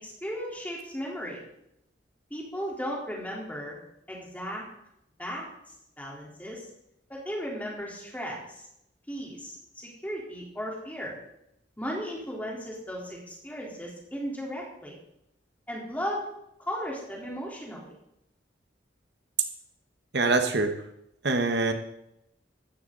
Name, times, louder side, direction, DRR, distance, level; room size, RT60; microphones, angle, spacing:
voice 1, 0.0-1.4 2.3-3.8 4.1-4.6 5.2-5.5 6.0-6.6 7.1-8.6 9.1-11.2 11.8-15.0 15.7-16.2 16.7-17.9, equal, 10° left, -3 dB, 3.8 m, -36 dB
voice 2, 20.1-20.7 21.2-21.7, right 3 dB, 65° right, 6 dB, 1.3 m, -24 dB
15.0 x 12.5 x 4.0 m, 0.80 s
head